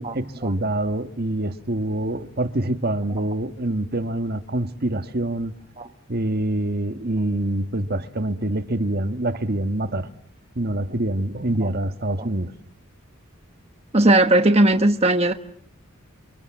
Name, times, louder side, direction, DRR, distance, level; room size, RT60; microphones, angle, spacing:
voice 1, 0.0-5.5 6.1-10.1 10.5-12.5, right 1 dB, 50° right, 1.6 m, -25 dB
voice 2, 13.9-15.3, right 1 dB, 30° right, 1.2 m, -17 dB
28.5 x 26.0 x 7.5 m
head